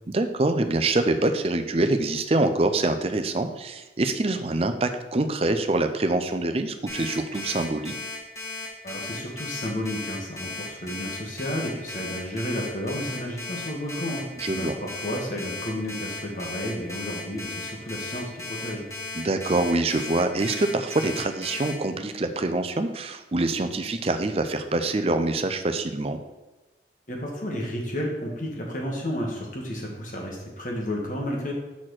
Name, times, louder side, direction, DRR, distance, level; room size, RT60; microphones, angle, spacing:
voice 1, 0.1-7.9 14.4-14.7 19.1-26.2, right 2 dB, 35° right, 8 dB, 0.5 m, -25 dB
Alarm, 6.9-21.7, left 3 dB, 15° left, 1.5 m, -35 dB
voice 2, 8.8-14.2 14.5-18.9 27.1-31.5, equal, 45° left, -1 dB, 1.6 m, -32 dB
5.9 x 4.3 x 6.4 m, 1.1 s
head